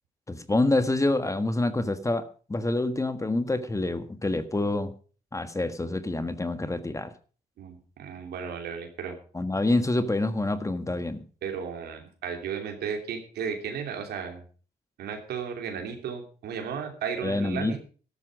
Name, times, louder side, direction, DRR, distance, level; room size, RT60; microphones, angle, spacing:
voice 1, 0.3-4.9 5.3-7.1 9.3-11.2 17.2-17.8, left 2 dB, 20° left, 1.5 m, -27 dB
voice 2, 7.6-9.1 11.4-14.4 15.0-17.8, right 7 dB, 85° right, 3.0 m, -34 dB
13.0 x 13.0 x 5.1 m
cardioid pair, 70°, 16 cm